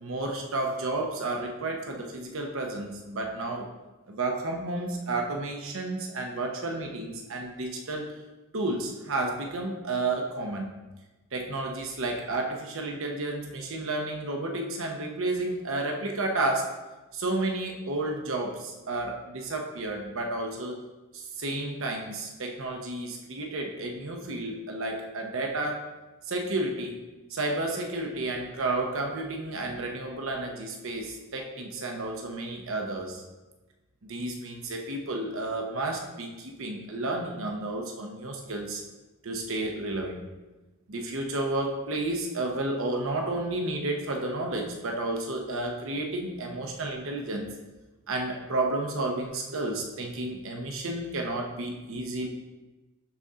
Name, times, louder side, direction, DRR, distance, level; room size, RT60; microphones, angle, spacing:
voice 1, 0.0-3.7 4.1-8.2 8.5-10.7 11.3-16.7 17.1-20.8 21.1-25.8 26.2-27.0 27.3-33.2 34.0-38.8 39.2-40.2 40.9-47.5 48.1-52.3, right 2 dB, 70° right, 2 dB, 0.9 m, -31 dB
12.0 x 4.2 x 3.7 m, 1.2 s
head